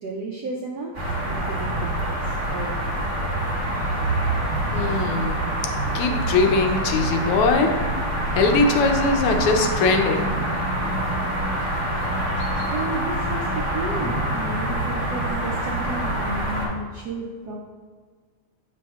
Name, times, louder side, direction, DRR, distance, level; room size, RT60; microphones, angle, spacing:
voice 1, 0.0-2.8 3.7-4.0 12.7-17.5, right 3 dB, 80° right, -1 dB, 0.9 m, -33 dB
sound 1, 0.9-16.7, right 1 dB, 30° right, 1.1 m, -25 dB
voice 2, 4.7-5.4 5.9-7.7 8.3-10.3, left 3 dB, 90° left, 4 dB, 1.6 m, -21 dB
7.0 x 6.0 x 2.3 m, 1.5 s
omnidirectional pair, 2.4 m